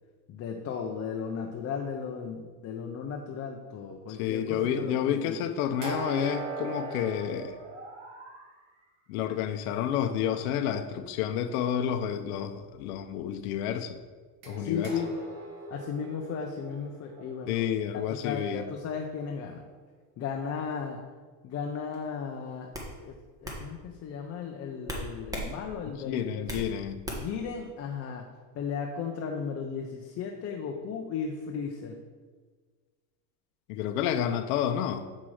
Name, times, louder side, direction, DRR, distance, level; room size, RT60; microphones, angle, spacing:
voice 1, 0.3-5.4 14.6-15.1 15.7-17.6 17.9-19.6 20.2-21.0 21.4-23.1 23.4-26.7 27.2-32.0, left 6 dB, 35° left, 2 dB, 0.8 m, -35 dB
voice 2, 4.1-7.6 9.1-14.0 14.5-14.9 17.5-18.6 26.0-27.0 33.7-35.1, left 9 dB, 80° left, 7 dB, 0.8 m, -30 dB
sound 1, 5.8-8.5 14.4-18.5, right 3 dB, 65° right, 2.3 m, -40 dB
sound 2, 21.9-22.2 22.7-22.9 23.4-23.6 24.9-25.5 25.9-26.7 27.0-27.4, equal, 10° right, 1.4 m, -36 dB
7.4 x 5.8 x 4.9 m, 1.4 s
supercardioid pair, 140°, 44 cm